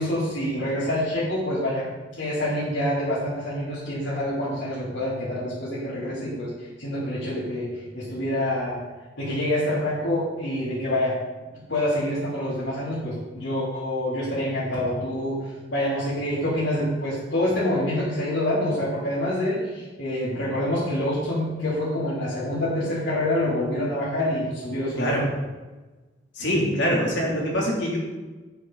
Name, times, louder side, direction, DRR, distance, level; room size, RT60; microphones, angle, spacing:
voice 1, 0.0-1.9 2.2-6.5 6.8-8.8 9.2-11.2 11.5-25.3, left 1 dB, 90° left, -11 dB, 3.5 m, -26 dB
voice 2, 25.0-25.3 26.3-28.0, equal, 70° left, -3 dB, 3.2 m, -24 dB
10.5 x 9.3 x 4.1 m, 1.2 s
head